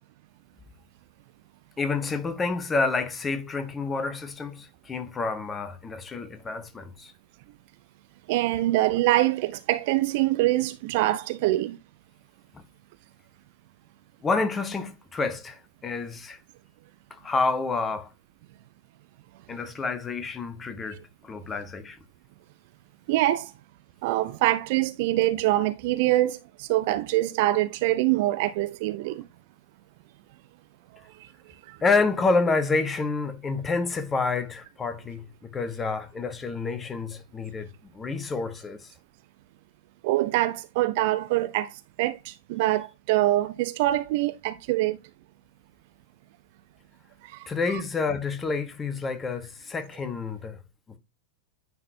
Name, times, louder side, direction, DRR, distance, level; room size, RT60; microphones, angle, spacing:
voice 1, 1.8-7.1 12.5-12.6 14.2-16.4 17.1-18.1 19.5-22.0 31.8-38.9 47.5-50.6, left 4 dB, 15° left, 1.0 m, -28 dB
voice 2, 8.3-11.8 23.1-23.5 24.0-29.2 31.7-31.8 40.0-41.7 42.0-45.0 47.3-47.5, right 16 dB, 50° right, 0.5 m, -24 dB
9.6 x 3.9 x 2.7 m
figure-of-eight pair, 90°, 0 cm